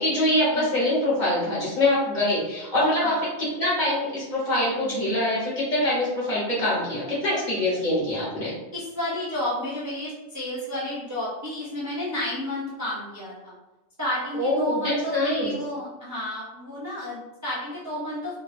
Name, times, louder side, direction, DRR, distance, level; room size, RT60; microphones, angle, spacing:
voice 1, 0.0-8.5 14.3-15.5, left 1 dB, 40° left, -8 dB, 0.9 m, -24 dB
voice 2, 8.7-13.5 14.0-18.4, left 1 dB, 20° right, -10 dB, 0.5 m, -31 dB
2.3 x 2.2 x 3.2 m, 1.0 s
omnidirectional pair, 1.3 m